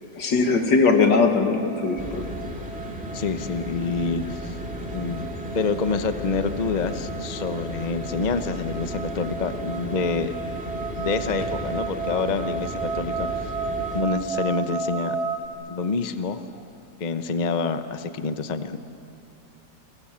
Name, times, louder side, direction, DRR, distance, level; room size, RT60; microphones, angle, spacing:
voice 1, 0.2-2.2, left 4 dB, 75° left, 5 dB, 2.6 m, -20 dB
sound 1, 1.5-15.5, right 4 dB, 60° right, 2.0 m, -34 dB
sound 2, 2.0-14.0, equal, 5° right, 2.1 m, -35 dB
voice 2, 3.1-4.5 4.9-5.3 5.5-10.3 11.0-13.3 13.9-15.2 15.7-16.4 17.0-18.8, left 4 dB, 35° left, 9 dB, 0.8 m, -27 dB
30.0 x 24.0 x 7.5 m, 2.8 s
omnidirectional pair, 1.9 m